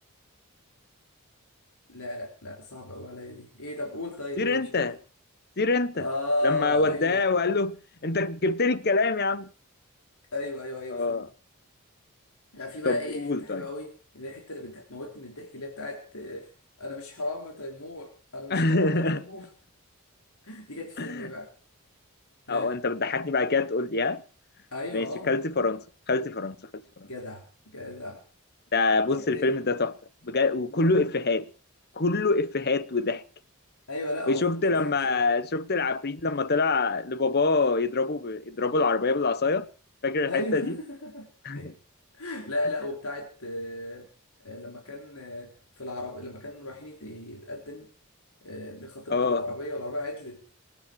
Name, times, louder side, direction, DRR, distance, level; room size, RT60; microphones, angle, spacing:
voice 1, 1.9-4.9 5.9-7.3 10.3-11.3 12.5-16.5 16.8-19.5 20.4-21.5 22.5-22.8 24.7-25.3 27.0-28.2 29.1-29.6 30.7-31.1 33.9-35.2 40.3-41.7 42.1-44.1 44.4-47.9 48.4-50.4, left 1 dB, 85° left, 4.1 m, -35 dB
voice 2, 4.4-4.9 5.6-6.1 6.4-7.8 8.0-9.5 10.9-11.3 12.8-13.6 18.5-19.2 21.0-21.3 22.5-24.2 24.9-26.6 27.0-27.1 28.7-29.9 30.2-31.5 32.0-33.2 34.3-39.7 40.0-40.7 41.4-41.7 49.1-49.4, left 3 dB, 45° left, 1.0 m, -25 dB
26.5 x 10.5 x 4.8 m
head